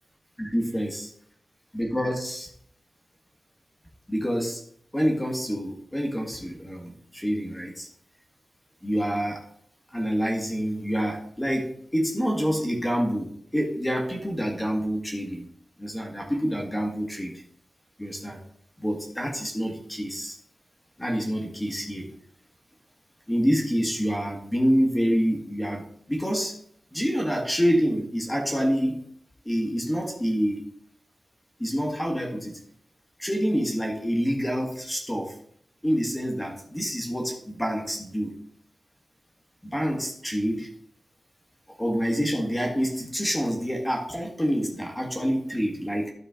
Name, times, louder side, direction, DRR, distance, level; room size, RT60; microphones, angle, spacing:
voice 1, 0.4-1.1 1.7-2.5 4.1-4.6 4.9-7.9 8.8-9.4 9.9-15.4 15.8-17.4 18.0-18.4 18.8-20.4 21.0-22.1 23.3-26.5 26.9-29.1 29.4-30.7 31.6-32.6 33.2-35.3 35.8-38.3 39.6-40.7 41.8-46.1, equal, 10° left, 1 dB, 1.6 m, -27 dB
12.5 x 4.4 x 3.7 m, 0.64 s
wide cardioid pair, 140°, 0 cm